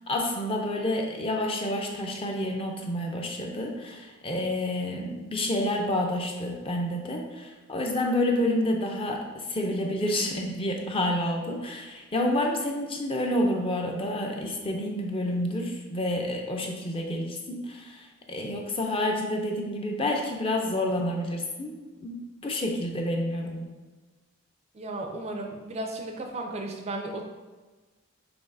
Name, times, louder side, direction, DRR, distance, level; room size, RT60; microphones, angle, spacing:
voice 1, 0.1-23.7, left 1 dB, 25° left, 1 dB, 0.5 m, -29 dB
voice 2, 24.7-27.2, right 2 dB, 30° right, 4 dB, 0.4 m, -34 dB
6.0 x 3.4 x 2.6 m, 1.3 s
head